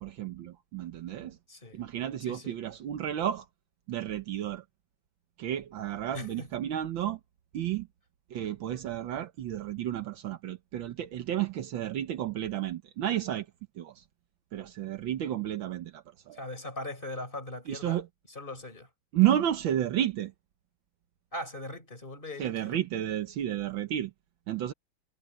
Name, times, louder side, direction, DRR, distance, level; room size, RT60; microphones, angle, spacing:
voice 1, 0.0-1.4 1.7-3.4 3.9-4.6 5.4-7.2 7.5-7.9 8.3-13.4 13.8-13.9 14.5-16.4 17.7-18.1 19.1-20.3 22.4-24.1 24.5-24.7, right 11 dB, 70° right, 1.7 m, -31 dB
voice 2, 1.5-1.8 2.2-2.6 6.1-6.5 16.3-18.0 18.3-18.9 21.3-22.8, left 1 dB, 25° left, 4.3 m, -40 dB
omnidirectional pair, 2.2 m